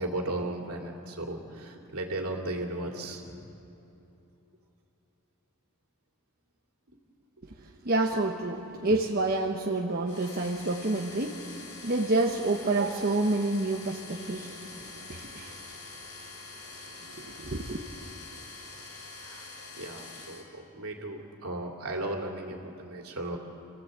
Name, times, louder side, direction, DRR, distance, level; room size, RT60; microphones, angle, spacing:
voice 1, 0.0-3.5 14.1-14.4 19.2-19.5 19.8-23.4, right 1 dB, 70° right, 1 dB, 2.9 m, -36 dB
voice 2, 7.8-11.3 11.8-14.6 15.1-15.5 17.2-17.8, right 2 dB, 45° right, 0 dB, 1.1 m, -28 dB
sound 1, 10.1-20.4, left 3 dB, 65° left, 4.7 m, -45 dB
26.5 x 15.0 x 8.1 m, 3.0 s
head